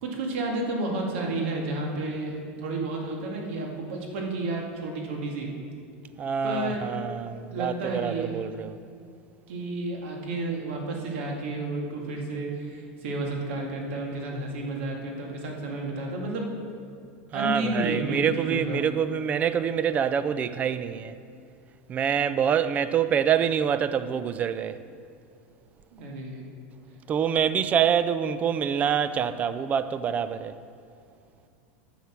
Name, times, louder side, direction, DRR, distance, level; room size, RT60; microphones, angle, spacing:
voice 1, 0.0-5.5 6.4-6.9 7.5-8.4 9.5-16.5 17.3-18.8 25.9-26.5, right 2 dB, 75° right, 2.1 m, -31 dB
voice 2, 6.2-8.8 17.3-21.1 21.9-24.8 27.1-30.6, right 8 dB, 25° right, 0.4 m, -26 dB
10.5 x 7.1 x 6.1 m
supercardioid pair, 150°, 6 cm